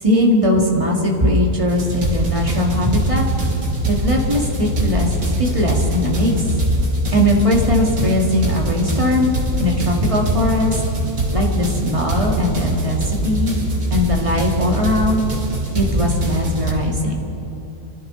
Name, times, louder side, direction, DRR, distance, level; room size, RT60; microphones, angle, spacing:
voice 1, 0.0-3.2 3.9-5.1 5.4-6.4 7.1-9.3 9.6-10.8 11.3-13.5 13.9-15.2 15.7-17.2, left 1 dB, 20° right, -1 dB, 2.1 m, -19 dB
sound 1, 1.7-16.7, right 1 dB, 75° right, 3.0 m, -22 dB
25.0 x 14.5 x 3.9 m, 2.9 s
omnidirectional pair, 1.6 m